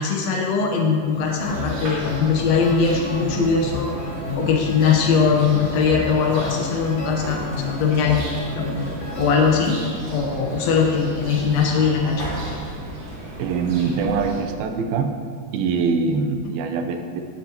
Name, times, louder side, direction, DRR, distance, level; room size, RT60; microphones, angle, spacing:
voice 1, 0.0-3.9 4.3-8.2 8.5-8.6 9.2-9.8 10.1-12.2, left 5 dB, 75° left, 0 dB, 1.5 m, -20 dB
sound 1, 1.0-9.7, left 2 dB, 50° left, 3.0 m, -32 dB
sound 2, 1.4-14.4, right 1 dB, 50° right, 3.2 m, -34 dB
voice 2, 13.4-15.2 15.5-17.2, right 5 dB, 80° right, 6 dB, 2.6 m, -23 dB
18.0 x 8.4 x 2.9 m, 2.1 s
omnidirectional pair, 4.4 m